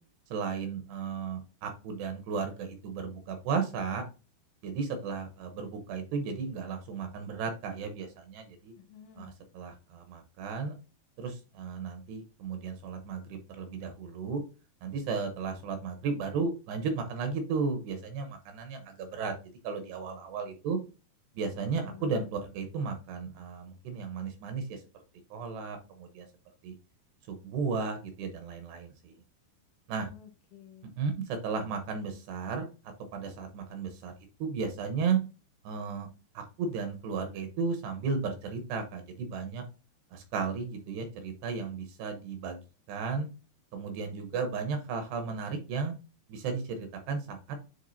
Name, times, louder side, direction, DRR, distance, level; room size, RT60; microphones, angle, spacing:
voice 1, 0.3-4.0 4.6-8.7 9.2-10.7 11.2-14.4 14.8-19.3 19.6-20.8 21.3-24.8 25.3-26.3 26.6-26.7 27.3-29.2 29.9-30.1 31.0-32.7 33.1-34.1 34.4-35.2 35.6-36.1 36.3-39.6 40.1-42.6 42.9-43.3 43.7-45.9 46.3-47.6, right 5 dB, 75° right, 6 dB, 2.7 m, -34 dB
voice 2, 8.8-9.3 21.8-22.3 30.0-30.9, left 10 dB, 85° left, 5 dB, 3.5 m, -52 dB
9.9 x 3.6 x 2.6 m, 0.31 s
omnidirectional pair, 5.4 m